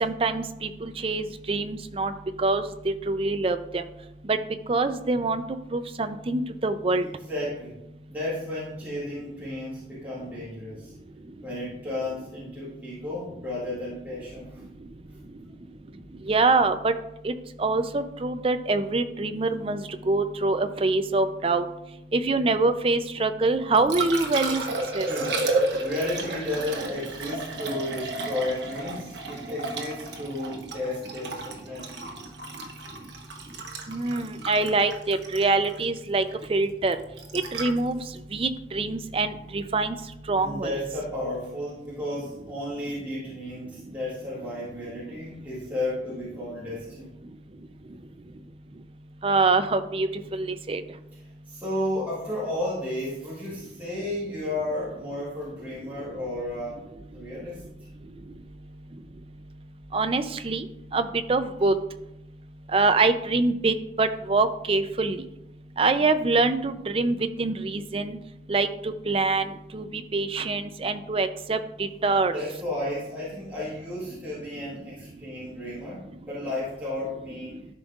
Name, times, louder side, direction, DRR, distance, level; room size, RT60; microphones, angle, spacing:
voice 1, 0.0-2.1 2.4-3.8 4.3-4.4 4.7-5.4 5.7-7.1 16.3-16.9 17.2-17.3 17.6-19.8 20.1-21.7 22.1-24.6 24.9-25.1 33.9-36.2 36.5-37.0 37.3-38.0 38.3-40.0 40.3-40.7 49.2-50.8 59.9-60.6 60.9-61.7 62.7-65.2 65.8-68.2 68.5-72.3, right 3 dB, 30° right, 10 dB, 0.4 m, -25 dB
voice 2, 7.0-7.8 8.1-10.9 11.4-14.6 25.0-25.4 25.8-31.9 40.3-47.1 51.5-56.9 57.1-57.6 72.0-77.5, left 1 dB, 10° right, -10 dB, 2.0 m, -33 dB
Liquid, 23.5-39.6 42.4-42.5, right 2 dB, 70° right, 1.2 m, -33 dB
12.0 x 5.3 x 2.4 m, 0.86 s
head